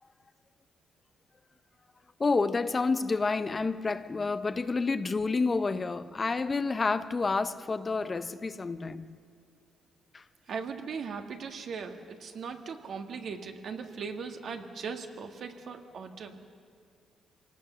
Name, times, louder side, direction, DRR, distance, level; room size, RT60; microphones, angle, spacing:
voice 1, 2.2-9.1 10.1-10.2, left 4 dB, 30° left, 0.7 m, -29 dB
voice 2, 10.5-16.4, right 5 dB, 60° right, 1.9 m, -39 dB
25.5 x 18.5 x 6.9 m
cardioid pair, 90°, 0 cm